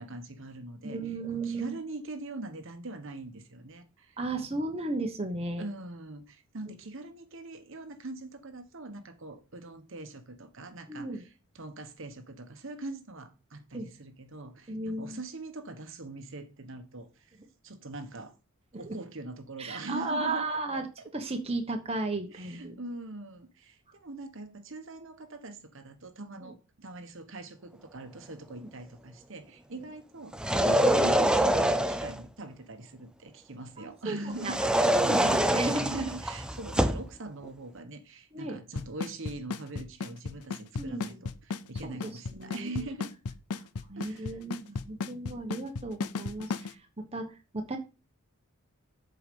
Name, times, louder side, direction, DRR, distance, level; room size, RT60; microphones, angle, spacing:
voice 1, 0.0-1.0 1.3-4.2 5.6-11.3 11.5-17.4 17.6-18.4 18.7-20.9 22.3-34.6 35.1-43.1 44.0-44.4, right 2 dB, 55° right, 1.1 m, -42 dB
voice 2, 0.8-1.8 4.2-5.6 10.9-11.2 13.7-13.9 14.7-15.2 19.6-20.8 21.1-22.7 26.4-26.5 28.6-28.7 29.8-29.9 33.8-34.5 34.9-36.0 38.3-38.6 40.7-41.2 41.9-42.1 42.4-42.7 43.9-47.8, right 2 dB, 25° right, 1.1 m, -35 dB
sound 1, 30.3-32.2 34.4-37.1, right 1 dB, 5° right, 0.4 m, -25 dB
Drum kit / Snare drum / Bass drum, 38.8-46.7, left 4 dB, 90° left, 0.6 m, -34 dB
8.1 x 4.9 x 5.3 m
head